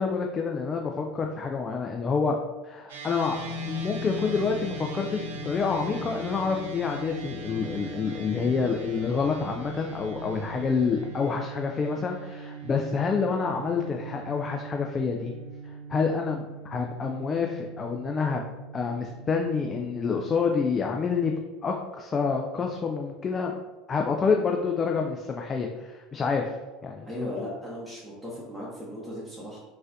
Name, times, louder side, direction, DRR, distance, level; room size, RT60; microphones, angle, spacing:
voice 1, 0.0-2.4 2.6-3.4 3.7-15.3 15.9-18.4 18.7-23.6 23.9-26.5 26.8-27.3, left 5 dB, 30° left, 2 dB, 0.3 m, -28 dB
sound 1, 2.9-20.4, right 5 dB, 80° right, 0.5 m, -42 dB
sound 2, 3.3-10.8, left 4 dB, 40° right, 0.8 m, -39 dB
voice 2, 27.0-29.6, equal, ahead, -8 dB, 1.0 m, -37 dB
3.9 x 2.5 x 2.6 m, 1.1 s
hypercardioid pair, 80°, 0 cm